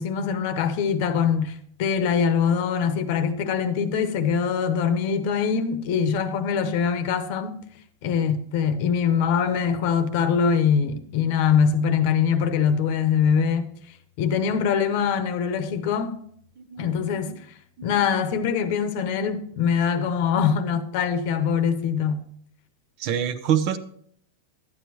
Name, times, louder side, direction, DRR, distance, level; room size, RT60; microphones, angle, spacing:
voice 1, 0.0-7.6 8.0-13.7 14.2-16.1 16.8-17.3 17.8-22.2, left 7 dB, 60° left, 0.9 m, -23 dB
voice 2, 16.6-17.4 17.8-18.1 23.0-23.8, right 9 dB, 50° right, 0.7 m, -27 dB
11.5 x 8.6 x 3.1 m
hypercardioid pair, 125°, 0 cm